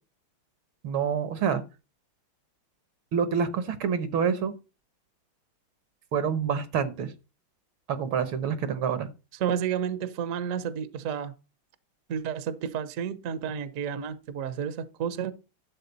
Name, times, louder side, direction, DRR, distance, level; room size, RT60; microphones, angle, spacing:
voice 1, 0.8-1.6 3.1-4.5 6.1-7.1 7.9-9.1, right 7 dB, 75° right, 1.9 m, -27 dB
voice 2, 9.4-11.3 12.1-15.3, right 8 dB, 50° right, 1.0 m, -31 dB
11.5 x 7.4 x 4.1 m
omnidirectional pair, 2.3 m